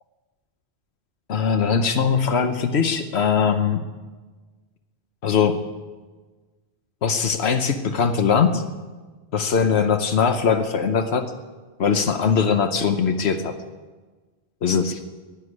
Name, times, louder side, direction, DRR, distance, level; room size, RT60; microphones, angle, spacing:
voice 1, 1.3-3.8 5.2-5.6 7.0-8.6 9.3-11.3 11.8-13.5 14.6-15.0, left 6 dB, 85° left, 7 dB, 1.2 m, -21 dB
11.5 x 11.5 x 9.8 m, 1.3 s
omnidirectional pair, 1.1 m